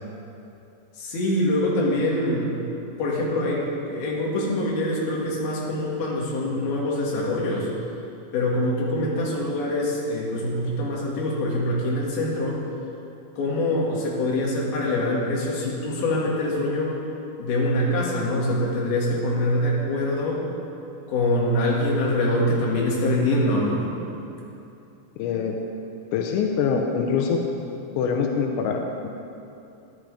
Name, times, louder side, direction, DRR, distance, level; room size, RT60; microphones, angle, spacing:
voice 1, 1.0-2.5 3.0-7.7 8.3-12.6 13.4-17.0 17.4-20.4 21.1-23.9, left 1 dB, 60° left, -4 dB, 3.9 m, -24 dB
voice 2, 25.2-25.6 26.1-27.4 27.9-29.1, left 6 dB, 90° left, 2 dB, 3.1 m, -24 dB
15.5 x 11.0 x 4.9 m, 2.8 s
omnidirectional pair, 5.2 m